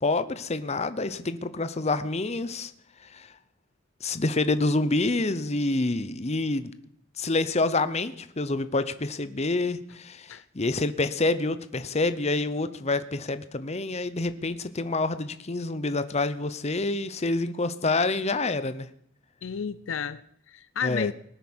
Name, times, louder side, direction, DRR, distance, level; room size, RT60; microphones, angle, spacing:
voice 1, 0.0-2.7 3.1-3.3 4.0-6.7 7.2-18.9 20.8-21.1, left 2 dB, 30° left, 0.8 m, -27 dB
voice 2, 19.4-21.1, left 7 dB, 70° left, 0.5 m, -32 dB
20.0 x 9.1 x 6.2 m
head